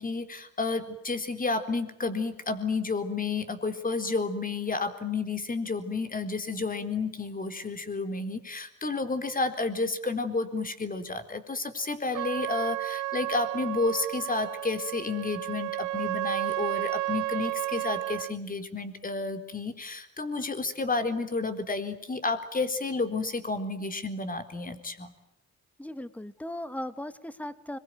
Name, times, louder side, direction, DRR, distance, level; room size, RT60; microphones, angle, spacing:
voice 1, 0.0-25.1, left 3 dB, 30° left, 8 dB, 3.9 m, -31 dB
Trumpet, 12.1-18.3, right 17 dB, 85° right, 1.3 m, -32 dB
voice 2, 25.8-27.8, left 1 dB, 5° left, 13 dB, 1.6 m, -37 dB
25.5 x 22.0 x 9.3 m, 0.81 s
cardioid pair, 90°, 30 cm